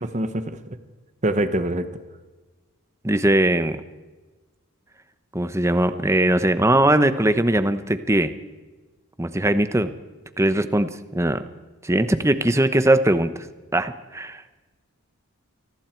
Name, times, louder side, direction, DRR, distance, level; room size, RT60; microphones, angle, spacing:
voice 1, 0.0-0.8 1.2-1.9, right 1 dB, 30° right, 10 dB, 1.1 m, -25 dB
voice 2, 3.0-3.8 5.3-8.3 9.2-9.9 10.4-11.4 11.8-13.3 13.7-14.4, right 1 dB, 10° right, 11 dB, 0.9 m, -20 dB
28.5 x 20.0 x 4.6 m, 1.3 s
head